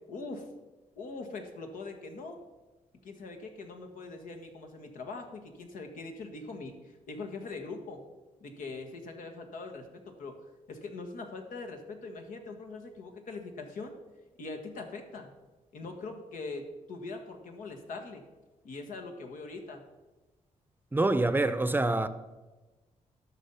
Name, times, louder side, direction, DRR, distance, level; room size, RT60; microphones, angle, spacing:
voice 1, 0.1-0.5 1.0-2.4 3.0-8.0 8.4-13.9 14.4-15.3 15.7-18.2 18.6-19.8, left 3 dB, 90° left, 1.5 m, -42 dB
voice 2, 20.9-22.1, right 2 dB, 15° right, 0.6 m, -26 dB
13.0 x 6.2 x 5.6 m
cardioid pair, 105°, 13 cm